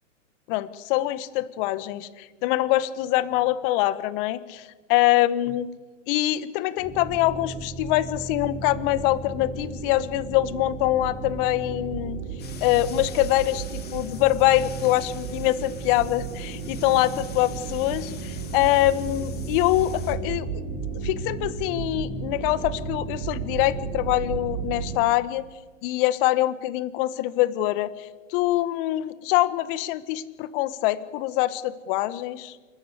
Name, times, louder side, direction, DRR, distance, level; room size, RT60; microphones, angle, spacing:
voice 1, 0.5-5.7 6.1-12.2 12.6-20.5 21.0-25.4 25.8-32.6, left 15 dB, 45° left, 14 dB, 1.5 m, -24 dB
sound 1, 6.8-25.0, right 4 dB, 55° right, 6.8 m, -34 dB
sound 2, 12.4-20.1, left 8 dB, 25° left, 2.7 m, -46 dB
28.0 x 13.0 x 8.2 m, 1.3 s
hypercardioid pair, 115°, 38 cm